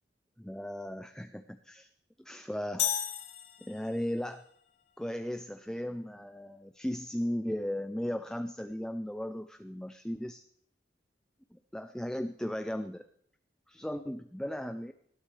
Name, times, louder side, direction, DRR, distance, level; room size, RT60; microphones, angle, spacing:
voice 1, 0.4-1.9 2.2-3.0 3.6-4.4 5.0-10.4 11.5-13.1 13.7-14.9, equal, 5° left, 8 dB, 0.5 m, -36 dB
sound 1, 2.8-4.2, left 9 dB, 80° left, 2.8 m, -33 dB
19.5 x 13.0 x 3.3 m, 0.69 s
head